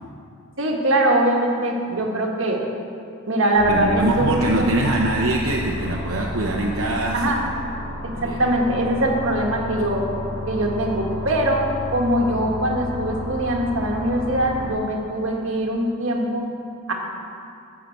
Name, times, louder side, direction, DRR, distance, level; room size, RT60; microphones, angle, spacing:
voice 1, 0.6-2.6 3.3-4.7 7.1-7.4 8.0-10.0 10.5-11.6 11.9-16.4 16.9-17.0, right 1 dB, 65° right, 0 dB, 1.6 m, -22 dB
sound 1, 3.5-14.7, left 1 dB, 40° left, 2.7 m, -32 dB
voice 2, 3.7-7.3 8.1-8.5, right 2 dB, 80° right, -1 dB, 0.9 m, -23 dB
12.0 x 5.8 x 7.9 m, 2.5 s
head